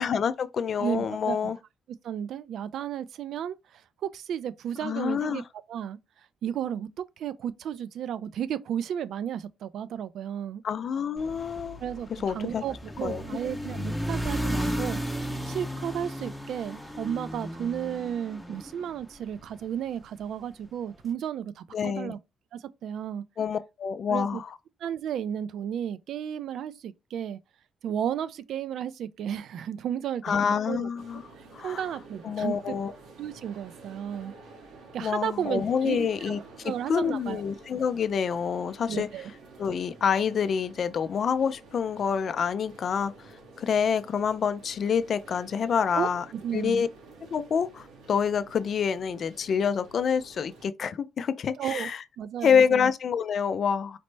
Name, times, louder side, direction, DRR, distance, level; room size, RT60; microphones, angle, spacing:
voice 1, 0.0-1.6 4.8-5.4 10.6-11.8 12.2-12.6 13.0-13.3 21.7-22.1 23.4-24.5 30.2-31.2 31.5-31.8 32.2-32.9 35.0-36.4 36.6-39.1 39.6-43.3 43.6-46.2 46.5-46.9 47.2-52.0 52.4-54.0, left 7 dB, 55° left, 0.3 m, -27 dB
voice 2, 0.8-1.5 2.0-5.4 5.7-6.0 6.4-10.6 11.8-15.0 15.5-22.2 22.5-23.2 24.1-24.4 24.8-27.4 27.8-30.9 31.6-32.5 33.2-34.3 34.9-37.4 38.9-39.3 45.9-46.9 51.6-51.9 52.2-52.9, right 9 dB, 70° right, 0.3 m, -33 dB
sound 1, 11.2-19.5, equal, ahead, 0.7 m, -34 dB
sound 2, 31.0-50.7, right 3 dB, 90° right, 1.0 m, -50 dB
4.2 x 2.0 x 3.2 m
cardioid pair, 90°, 0 cm